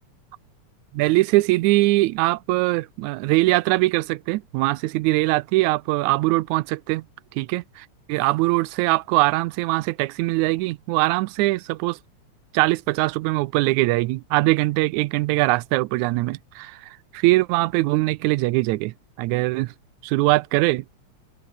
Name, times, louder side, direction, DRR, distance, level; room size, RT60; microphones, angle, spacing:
voice 1, 0.9-7.0 7.4-12.0 12.5-19.7 20.0-20.9, right 20 dB, 90° right, 2.0 m, -22 dB
open air
omnidirectional pair, 3.3 m